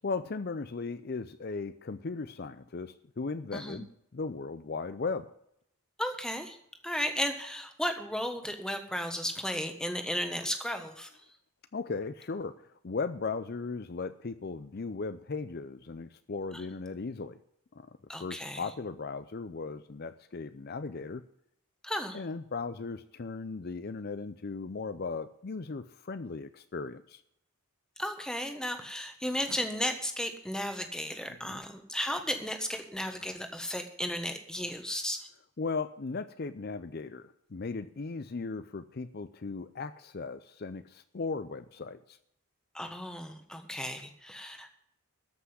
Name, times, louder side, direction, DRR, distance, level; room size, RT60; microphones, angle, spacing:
voice 1, 0.0-5.3 11.7-17.4 17.7-21.2 22.1-27.2 31.5-31.6 35.6-42.2, left 4 dB, 45° left, 12 dB, 0.5 m, -37 dB
voice 2, 6.0-6.6 6.8-11.1 18.1-18.6 21.8-22.2 28.0-35.3 42.7-44.7, equal, 5° left, 6 dB, 1.3 m, -34 dB
13.5 x 6.0 x 9.7 m, 0.74 s
head